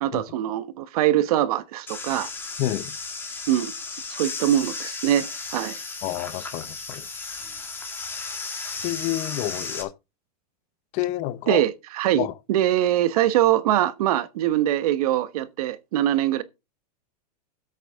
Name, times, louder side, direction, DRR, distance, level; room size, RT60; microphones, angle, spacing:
voice 1, 0.0-2.3 3.5-3.7 4.1-5.8 11.5-16.4, right 12 dB, 65° right, 1.2 m, -23 dB
sound 1, 1.9-9.8, left 4 dB, 10° left, 2.0 m, -34 dB
voice 2, 2.6-3.0 6.0-7.1 8.8-9.9 10.9-11.6 12.1-12.3, left 15 dB, 35° left, 0.8 m, -29 dB
13.5 x 8.1 x 3.6 m
supercardioid pair, 160°, 21 cm